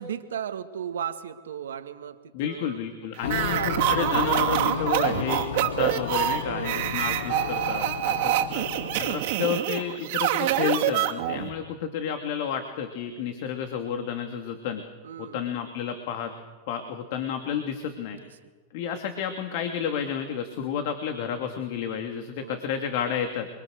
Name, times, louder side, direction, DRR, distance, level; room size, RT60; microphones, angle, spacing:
voice 1, 0.0-2.8 3.4-4.1 6.4-7.0 8.0-8.3 15.0-15.5 22.4-22.6, right 8 dB, 85° right, 9 dB, 1.9 m, -36 dB
voice 2, 2.3-3.6 3.9-8.6 9.0-14.8 15.2-16.3 16.7-18.2 18.7-23.5, left 8 dB, 65° left, 6 dB, 2.7 m, -31 dB
sound 1, 3.2-9.1, left 6 dB, 85° left, 1.8 m, -33 dB
sound 2, 3.2-11.5, right 13 dB, 65° right, 2.6 m, -26 dB
29.5 x 23.0 x 6.6 m, 1.4 s
hypercardioid pair, 110°, 0 cm